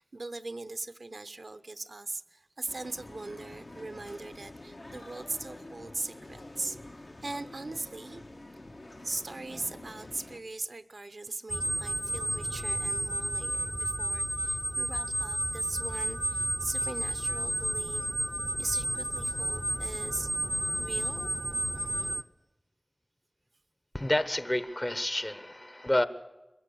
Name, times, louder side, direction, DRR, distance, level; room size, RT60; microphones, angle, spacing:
voice 1, 0.0-6.8 7.2-8.2 8.5-8.6 9.0-18.1 18.6-20.3 20.8-21.3 21.7-22.3, right 2 dB, 75° right, 13 dB, 0.7 m, -40 dB
sound 1, 2.7-10.4, left 2 dB, 65° left, 1.3 m, -47 dB
sound 2, 11.5-22.2, right 1 dB, 20° right, 0.6 m, -32 dB
voice 2, 23.9-26.0, left 1 dB, 30° left, 13 dB, 1.0 m, -29 dB
22.0 x 15.0 x 8.4 m, 1.0 s
wide cardioid pair, 50°, 0 cm